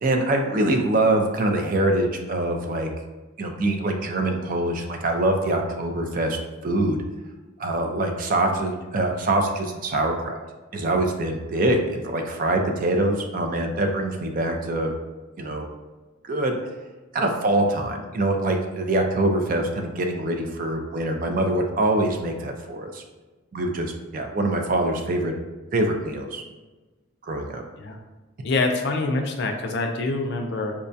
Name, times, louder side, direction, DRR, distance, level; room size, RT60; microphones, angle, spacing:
voice 1, 0.0-2.9 3.4-7.0 7.6-10.4 10.7-14.9 15.4-15.6 16.3-16.6 17.1-23.0 23.5-25.3 25.7-26.4 27.2-27.6, right 1 dB, 40° right, 3 dB, 0.3 m, -24 dB
voice 2, 28.4-30.7, left 3 dB, 55° left, 3 dB, 0.4 m, -25 dB
4.5 x 2.2 x 2.6 m, 1.2 s
head